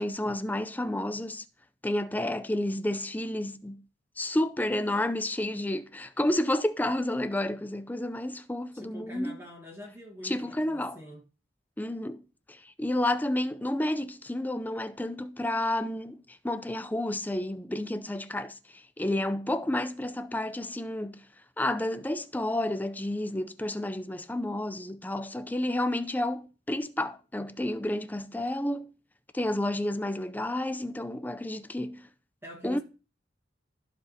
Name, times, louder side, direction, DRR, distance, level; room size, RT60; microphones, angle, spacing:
voice 1, 0.0-1.4 1.8-3.8 4.2-9.4 10.2-11.0 11.8-12.2 12.5-21.3 21.6-28.9 29.3-32.1 32.6-32.8, left 1 dB, 10° left, 0.5 m, -30 dB
voice 2, 8.7-11.2 32.4-32.8, equal, 15° right, 1.6 m, -44 dB
14.0 x 4.8 x 2.8 m
head